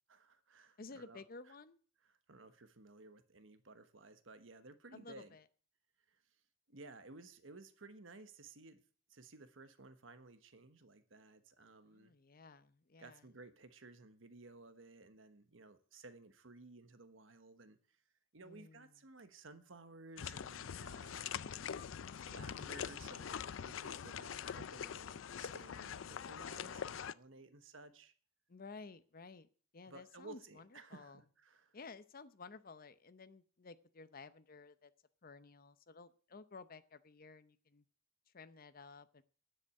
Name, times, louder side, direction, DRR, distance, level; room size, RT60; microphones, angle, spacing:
voice 1, 0.1-1.5 2.1-5.4 6.1-6.4 6.7-8.8 9.1-12.1 13.0-18.0 18.3-21.7 22.3-28.1 29.9-31.8, right 3 dB, 80° right, 1.3 m, -56 dB
voice 2, 0.8-1.8 4.9-5.4 11.9-13.2 18.4-18.9 28.5-29.5 29.7-31.2 31.7-34.9 35.2-37.8 38.3-39.2, left 4 dB, 50° left, 0.8 m, -54 dB
sound 1, 20.2-27.1, left 8 dB, 80° left, 0.5 m, -44 dB
10.0 x 7.9 x 8.5 m
head